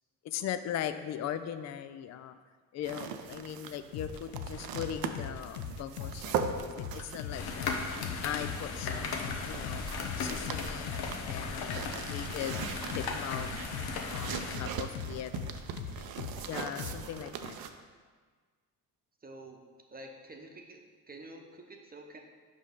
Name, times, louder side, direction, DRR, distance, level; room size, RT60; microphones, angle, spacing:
voice 1, 0.2-2.4 2.7-7.7 8.2-12.6 12.9-13.5 14.1-15.3 16.5-17.7, left 10 dB, 40° left, 11 dB, 0.4 m, -39 dB
sound 1, 2.8-17.7, right 7 dB, 55° right, 0.6 m, -41 dB
sound 2, 3.9-16.5 16.8-17.0, left 6 dB, 90° left, 0.6 m, -40 dB
sound 3, 7.3-14.6, left 4 dB, 60° left, 0.9 m, -37 dB
voice 2, 19.2-19.6 19.9-22.2, right 2 dB, 20° right, 2 dB, 0.9 m, -48 dB
5.5 x 5.0 x 3.7 m, 1.5 s
hypercardioid pair, 55°, 45 cm